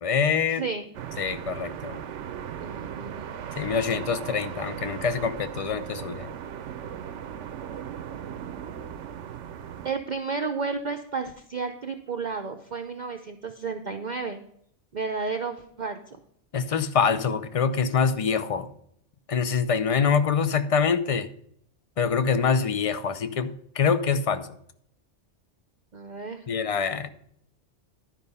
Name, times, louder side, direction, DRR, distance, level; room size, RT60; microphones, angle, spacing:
voice 1, 0.0-0.7 1.2-2.0 3.6-6.3 16.5-18.7 19.3-21.3 22.0-24.5 26.5-27.1, left 6 dB, 40° left, 12 dB, 0.5 m, -25 dB
voice 2, 0.6-0.9 2.6-3.3 9.8-14.4 14.9-16.0 25.9-26.4, right 4 dB, 45° right, 5 dB, 0.7 m, -32 dB
sound 1, 0.9-9.9, right 8 dB, 75° right, 1.0 m, -37 dB
11.5 x 5.4 x 5.4 m, 0.70 s
omnidirectional pair, 1.2 m